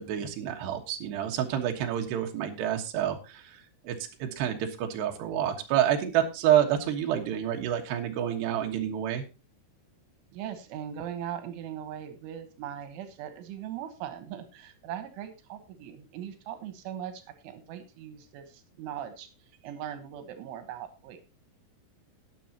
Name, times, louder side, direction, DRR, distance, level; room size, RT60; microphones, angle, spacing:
voice 1, 0.0-4.0 4.2-9.3, right 10 dB, 70° right, 3 dB, 3.4 m, -28 dB
voice 2, 10.3-19.3 19.6-21.2, right 10 dB, 85° right, 8 dB, 3.8 m, -40 dB
20.0 x 7.1 x 2.9 m, 0.29 s
omnidirectional pair, 5.4 m